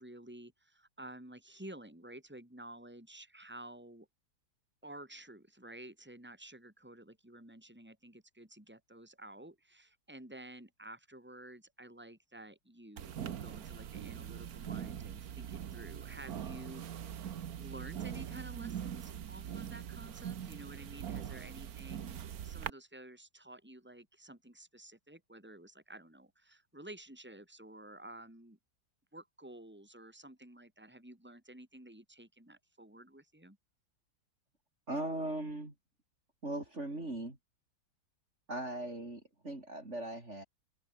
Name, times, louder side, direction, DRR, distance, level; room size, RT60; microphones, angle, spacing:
voice 1, 0.0-4.1 4.8-16.8 17.1-28.6 29.1-33.6, right 1 dB, 5° right, 5.3 m, -52 dB
sound 1, 13.0-22.7, right 9 dB, 55° right, 1.4 m, -42 dB
voice 2, 34.9-35.7 36.4-37.4 38.5-40.4, right 1 dB, 35° right, 5.2 m, -39 dB
open air
omnidirectional pair, 2.1 m